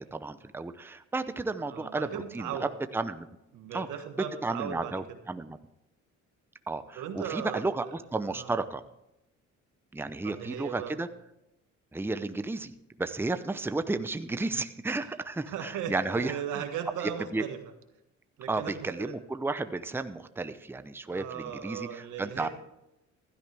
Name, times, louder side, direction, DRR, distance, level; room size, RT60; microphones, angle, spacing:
voice 1, 0.0-3.3 3.7-4.0 4.4-5.6 6.7-8.8 9.9-11.1 11.9-12.7 13.0-16.6 17.0-17.5 18.5-22.5, right 3 dB, 5° right, 10 dB, 0.7 m, -33 dB
voice 2, 1.6-2.7 3.5-5.0 6.9-7.6 8.3-8.5 10.2-11.0 15.5-17.6 18.4-19.1 21.1-22.5, right 8 dB, 90° right, 6 dB, 1.6 m, -37 dB
15.5 x 12.5 x 3.4 m, 0.88 s
cardioid pair, 90°, 30 cm